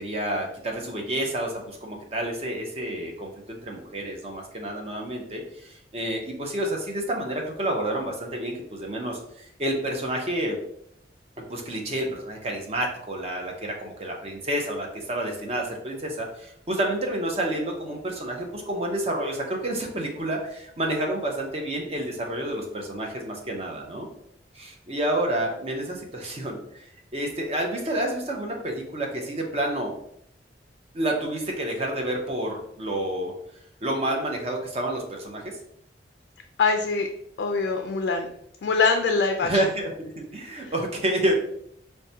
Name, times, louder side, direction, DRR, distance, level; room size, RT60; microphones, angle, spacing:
voice 1, 0.0-10.6 11.4-24.1 24.5-26.8 27.1-29.9 30.9-33.3 33.8-35.4 39.4-41.3, right 1 dB, 35° right, 1 dB, 0.7 m, -29 dB
voice 2, 36.6-37.1 37.4-38.3 38.6-39.5 40.6-40.7, left 4 dB, 65° left, 4 dB, 0.3 m, -23 dB
4.6 x 2.2 x 2.7 m, 0.72 s
head